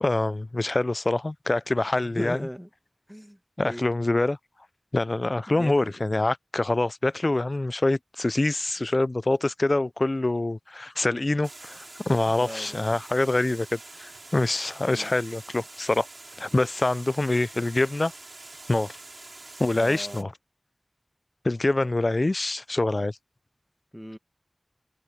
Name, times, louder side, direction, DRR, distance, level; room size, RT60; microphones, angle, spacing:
voice 1, 0.0-2.4 3.6-4.4 4.9-16.1 16.4-18.1 18.7-18.9 19.6-20.3 21.4-23.2, left 2 dB, 55° left, 0.4 m, -25 dB
voice 2, 1.9-2.7 3.1-3.8 5.5-5.7 12.3-12.9 14.8-15.1 19.7-20.2 23.9-24.2, equal, ahead, 1.8 m, -38 dB
Water, 11.4-20.2, right 2 dB, 70° right, 5.2 m, -45 dB
wide cardioid pair, 40°, 0 cm